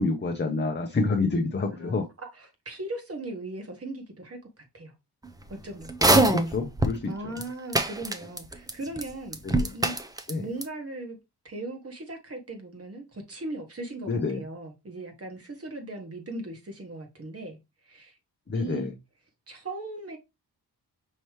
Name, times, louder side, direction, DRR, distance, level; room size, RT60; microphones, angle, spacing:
voice 1, 0.0-2.0 6.0-7.1 9.6-9.7 10.3-10.5 14.1-14.4 18.5-18.9, left 3 dB, 25° left, 0.7 m, -27 dB
voice 2, 1.7-4.9 5.5-5.9 7.1-9.4 9.7-9.9 10.4-11.2 11.4-17.6 17.8-18.2 18.5-18.9 19.5-20.2, right 2 dB, 35° right, 1.5 m, -38 dB
sound 1, 5.9-7.0 7.4-7.5 7.7-8.7 9.0-9.1 9.3-10.3 10.6-10.7, right 2 dB, 10° right, 0.5 m, -22 dB
5.5 x 3.0 x 3.1 m
wide cardioid pair, 125°, 40 cm